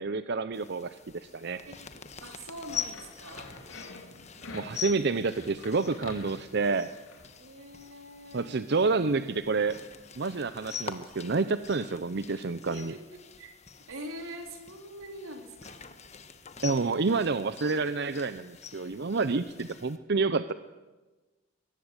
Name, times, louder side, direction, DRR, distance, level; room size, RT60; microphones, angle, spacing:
voice 1, 0.0-1.6 4.5-6.9 8.3-9.8 10.2-12.9 16.6-20.5, right 4 dB, 55° right, 12 dB, 0.7 m, -29 dB
sound 1, 0.5-20.0, left 7 dB, 35° left, 1.4 m, -44 dB
voice 2, 2.2-3.5 7.4-8.6 12.6-13.1 13.4-13.5 13.9-15.8, right 1 dB, 85° right, 4 dB, 4.1 m, -43 dB
sound 2, 2.5-7.3, left 2 dB, 85° left, 4.4 m, -47 dB
23.0 x 19.5 x 8.2 m, 1.2 s
head